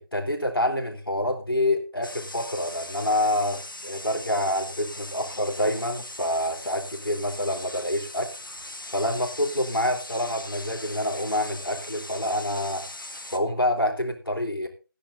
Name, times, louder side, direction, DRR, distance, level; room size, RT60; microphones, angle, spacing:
voice 1, 0.1-8.3 8.9-12.9 13.3-14.7, left 1 dB, 80° left, 3 dB, 3.9 m, -27 dB
sound 1, 2.0-13.4, left 1 dB, 65° left, 1.9 m, -40 dB
14.0 x 10.0 x 4.0 m, 0.33 s
figure-of-eight pair, 165°, 12 cm